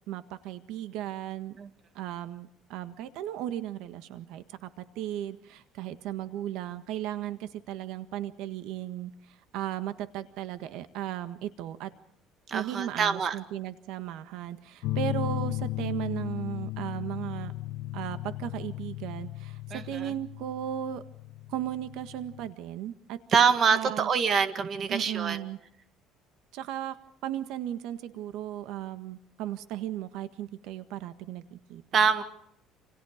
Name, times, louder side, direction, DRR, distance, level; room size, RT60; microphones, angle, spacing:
voice 1, 0.1-1.6 1.9-11.9 12.5-17.5 17.9-21.0 21.5-24.1 24.9-25.6 26.5-27.0 27.2-31.8, right 12 dB, 70° right, 10 dB, 1.6 m, -36 dB
voice 2, 12.5-13.4 19.7-20.1 23.3-25.4 31.9-32.2, right 6 dB, 35° right, 9 dB, 1.9 m, -25 dB
sound 1, 14.8-22.5, left 16 dB, 70° left, 1.2 m, -36 dB
28.5 x 28.5 x 5.1 m, 0.70 s
cardioid pair, 165°, 0 cm